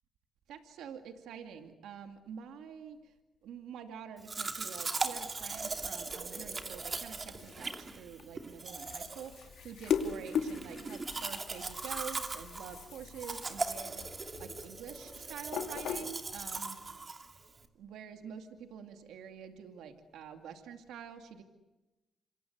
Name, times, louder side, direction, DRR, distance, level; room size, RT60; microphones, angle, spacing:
voice 1, 0.5-3.1 3.4-16.8 17.3-17.4 17.8-21.4, right 7 dB, 90° right, 6 dB, 2.4 m, -47 dB
Domestic sounds home sounds, 4.2-17.6, right 3 dB, 35° right, 2.8 m, -39 dB
sound 1, 7.0-16.6, left 7 dB, 80° left, 2.3 m, -40 dB
28.0 x 26.5 x 8.1 m, 1.0 s
cardioid pair, 75°, 0 cm